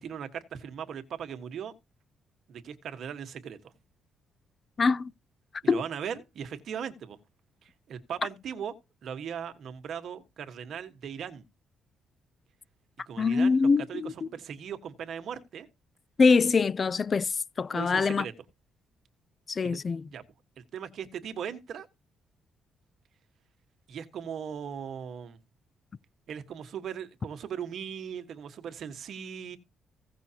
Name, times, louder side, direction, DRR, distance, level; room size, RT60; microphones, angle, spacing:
voice 1, 0.0-1.8 2.5-3.6 5.6-7.2 7.6-8.7 9.0-11.4 13.1-15.7 17.7-18.3 19.6-19.8 20.1-20.2 20.6-21.9 23.9-25.4 26.3-29.6, right 8 dB, 65° right, 1.4 m, -38 dB
voice 2, 4.8-5.1 5.7-5.8 13.2-14.3 16.2-17.3 17.6-18.3 19.5-20.0, left 4 dB, 40° left, 0.4 m, -24 dB
16.0 x 6.2 x 2.8 m
cardioid pair, 90°, 0 cm